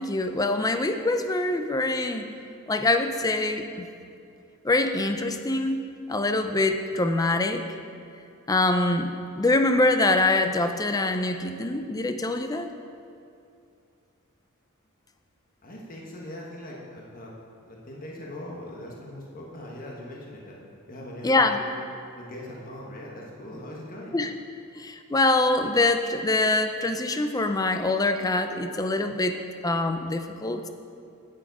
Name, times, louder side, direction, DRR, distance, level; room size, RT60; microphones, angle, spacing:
voice 1, 0.0-2.2 2.7-3.9 4.6-5.8 6.1-7.6 8.5-9.1 9.4-12.7 21.2-21.6 24.1-24.3 24.8-29.4 29.6-30.7, left 2 dB, 15° left, 7 dB, 0.5 m, -24 dB
voice 2, 15.6-17.3 17.7-20.6 20.9-21.8 22.1-24.1, left 1 dB, 40° left, -2 dB, 1.3 m, -40 dB
9.4 x 8.5 x 4.8 m, 2.4 s
head